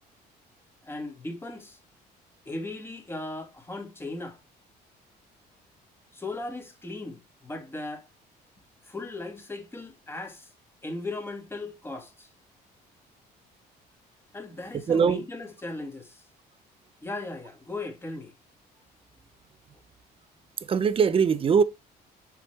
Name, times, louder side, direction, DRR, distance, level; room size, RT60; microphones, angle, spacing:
voice 1, 0.8-1.8 2.5-4.4 6.1-8.1 8.8-10.5 10.8-12.3 14.3-16.2 17.0-18.3, left 2 dB, 15° left, 1.9 m, -37 dB
voice 2, 14.9-15.2 20.6-21.6, right 6 dB, 35° right, 0.7 m, -21 dB
6.9 x 5.1 x 3.4 m
cardioid pair, 110°, 17 cm